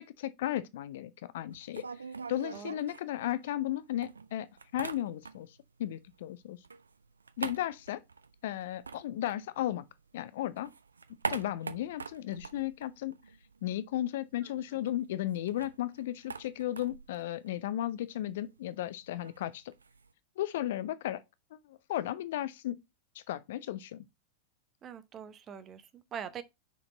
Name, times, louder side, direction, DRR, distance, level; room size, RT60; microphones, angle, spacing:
voice 1, 0.0-1.8 2.3-4.5 4.7-5.5 5.8-6.6 7.4-8.0 8.4-9.8 10.1-10.7 11.3-13.2 13.6-19.7 20.4-21.2 21.7-22.8 23.3-24.1, left 13 dB, 55° left, 0.6 m, -35 dB
sound 1, 1.5-3.7 4.0-5.6 5.9-10.1 10.4-13.7 14.0-14.1 14.3-20.1, right 5 dB, 75° right, 0.5 m, -44 dB
voice 2, 24.8-26.4, right 8 dB, 25° right, 0.8 m, -43 dB
6.1 x 4.5 x 3.9 m
figure-of-eight pair, 90°, 0 cm